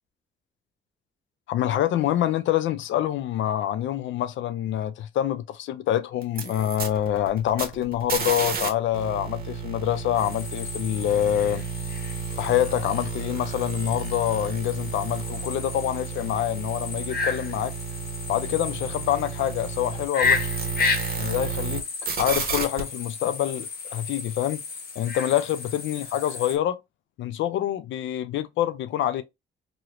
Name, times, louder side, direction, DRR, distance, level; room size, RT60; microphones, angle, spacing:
voice 1, 1.5-11.6 12.4-17.7 18.3-20.5 21.2-21.9 22.2-24.6 25.0-26.8 27.2-29.2, left 11 dB, 75° left, 0.5 m, -26 dB
sound 1, 6.2-8.7 8.9-21.8 22.0-22.8, right 6 dB, 50° right, 1.0 m, -32 dB
sound 2, 10.1-26.6, left 4 dB, 50° left, 1.0 m, -33 dB
2.9 x 2.7 x 2.9 m
cardioid pair, 90°, 20 cm